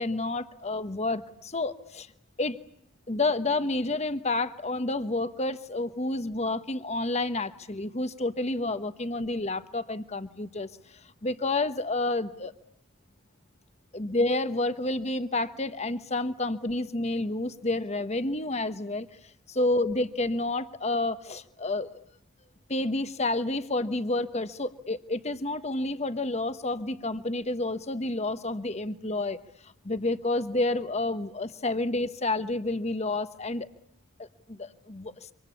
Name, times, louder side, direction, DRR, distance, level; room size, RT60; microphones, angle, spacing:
voice 1, 0.0-2.1 2.4-2.6 3.1-10.7 11.2-12.5 13.9-19.1 19.5-21.9 22.7-29.4 29.6-33.7 34.2-35.1, left 2 dB, 30° left, 11 dB, 1.2 m, -29 dB
26.5 x 25.5 x 8.5 m, 0.69 s
head